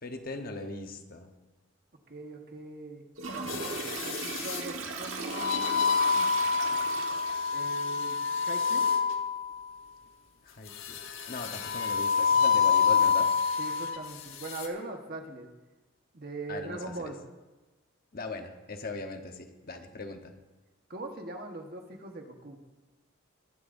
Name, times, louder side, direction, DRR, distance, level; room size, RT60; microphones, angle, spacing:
voice 1, 0.0-1.3 10.4-11.0 11.3-13.3 16.5-17.1 18.1-20.3, left 3 dB, 45° left, 5 dB, 1.0 m, -39 dB
voice 2, 2.1-3.0 4.0-6.3 7.5-8.9 13.6-15.5 16.1-17.2 20.9-22.6, right 2 dB, 45° right, 3 dB, 1.3 m, -41 dB
Toilet flush, 3.2-7.5, right 4 dB, 75° right, 1.4 m, -37 dB
sound 1, 3.5-4.6 5.3-9.6 10.8-14.0 14.4-14.7, left 5 dB, 75° left, 1.2 m, -27 dB
21.5 x 10.5 x 2.6 m, 1.2 s
head